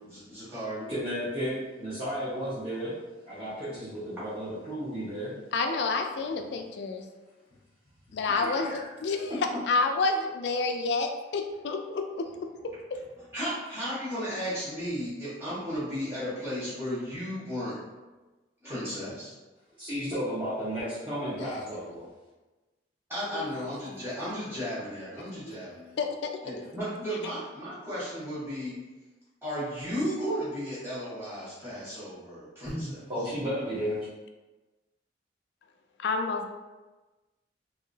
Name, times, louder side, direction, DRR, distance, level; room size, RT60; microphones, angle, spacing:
voice 1, 0.0-0.9 8.3-8.9 9.3-9.6 13.3-17.8 18.6-19.3 23.1-26.0 26.4-28.8 29.4-33.0, equal, 15° right, -11 dB, 1.4 m, -34 dB
voice 2, 0.9-2.9 3.2-5.3 19.8-22.0 32.7-34.0, equal, 30° right, -12 dB, 0.9 m, -33 dB
voice 3, 5.5-7.0 8.1-9.4 9.7-12.3 21.4-21.5 23.2-23.5 23.9-24.0 26.0-26.3 36.0-36.5, left 3 dB, 65° left, 5 dB, 0.3 m, -29 dB
2.9 x 2.8 x 2.7 m, 1.2 s
head